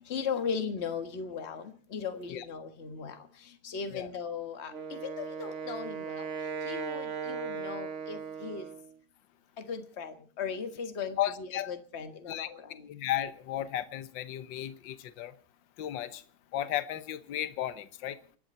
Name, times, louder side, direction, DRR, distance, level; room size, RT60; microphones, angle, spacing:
voice 1, 0.1-3.2 3.6-6.3 6.7-8.7 9.6-12.7, left 6 dB, 35° left, 1.6 m, -37 dB
Wind instrument woodwind instrument, 4.7-9.0, right 6 dB, 45° right, 1.1 m, -37 dB
voice 2, 11.2-11.7 12.3-15.3 15.8-16.2 16.5-18.2, left 12 dB, 65° left, 1.6 m, -34 dB
30.0 x 10.5 x 4.3 m
omnidirectional pair, 2.4 m